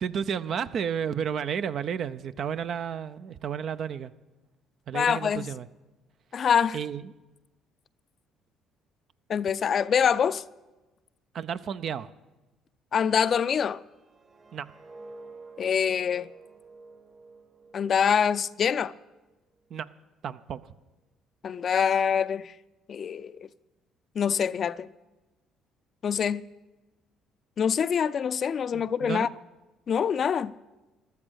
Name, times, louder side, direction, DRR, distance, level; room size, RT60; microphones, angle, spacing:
voice 1, 0.0-4.1 4.9-5.7 6.7-7.1 11.3-12.1 14.5-14.7 19.7-19.9 20.2-20.6 28.7-29.3, right 7 dB, 60° right, 0.6 m, -32 dB
voice 2, 4.9-5.5 6.3-6.8 9.3-10.4 12.9-13.8 15.6-16.3 17.7-18.9 21.4-22.5 22.9-23.4 24.2-24.9 26.0-26.4 27.6-29.3 29.9-30.5, left 7 dB, 50° left, 0.4 m, -25 dB
sound 1, 13.9-18.9 19.3-19.6, right 3 dB, 40° right, 1.6 m, -50 dB
14.0 x 12.5 x 6.4 m
supercardioid pair, 75°, 0 cm